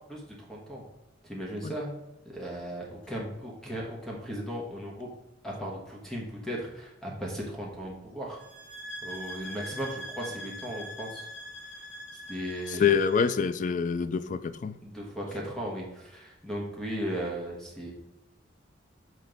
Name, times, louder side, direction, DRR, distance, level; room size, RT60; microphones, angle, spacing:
voice 1, 0.1-0.8 1.2-1.9 2.2-5.1 5.4-8.4 9.0-11.3 11.8-12.0 12.3-12.9 14.8-17.9, equal, 5° left, -3 dB, 1.2 m, -36 dB
sound 1, 8.4-13.4, equal, 90° left, 2.3 m, -42 dB
voice 2, 12.7-14.8, left 6 dB, 45° left, 12 dB, 0.3 m, -26 dB
6.0 x 4.2 x 5.1 m, 0.95 s
head